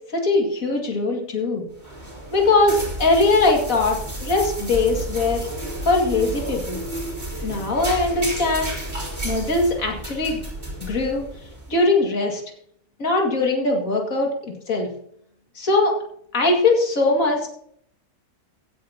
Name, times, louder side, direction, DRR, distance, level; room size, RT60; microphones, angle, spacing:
voice 1, 0.1-1.6 2.3-5.5 5.9-6.8 7.4-8.7 9.2-10.4 10.8-11.2 11.7-12.4 13.0-14.9 15.6-15.9 16.3-17.5, left 3 dB, 65° left, 1 dB, 2.6 m, -21 dB
sound 1, 1.7-11.7, right 1 dB, 30° right, 4.0 m, -32 dB
16.0 x 9.4 x 2.9 m, 0.66 s
omnidirectional pair, 1.6 m